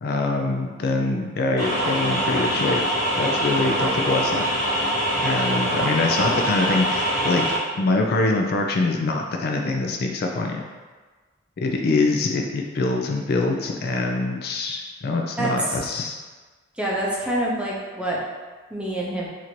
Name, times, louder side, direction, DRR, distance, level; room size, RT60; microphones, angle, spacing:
voice 1, 0.0-2.8 3.1-4.4 5.2-10.7 11.6-16.2, left 3 dB, 55° left, 2 dB, 0.3 m, -24 dB
sound 1, 1.6-7.6, equal, 20° left, 1.4 m, -24 dB
voice 2, 15.4-15.8 16.8-18.2 18.7-19.3, right 1 dB, 5° right, -5 dB, 0.6 m, -26 dB
2.9 x 2.5 x 4.3 m, 1.4 s
head